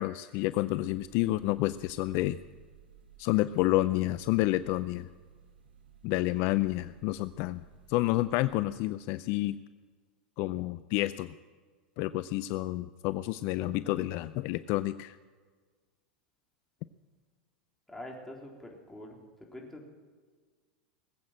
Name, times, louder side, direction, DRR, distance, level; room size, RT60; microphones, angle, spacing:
voice 1, 0.0-2.4 3.2-5.1 6.0-9.6 10.4-11.3 12.0-15.2, left 17 dB, 50° left, 14 dB, 0.4 m, -29 dB
sound 1, 0.9-8.5, right 9 dB, 80° right, 1.4 m, -58 dB
voice 2, 17.9-19.9, left 1 dB, 5° left, -1 dB, 3.8 m, -45 dB
20.0 x 8.3 x 7.6 m, 1.5 s
hypercardioid pair, 95°, 5 cm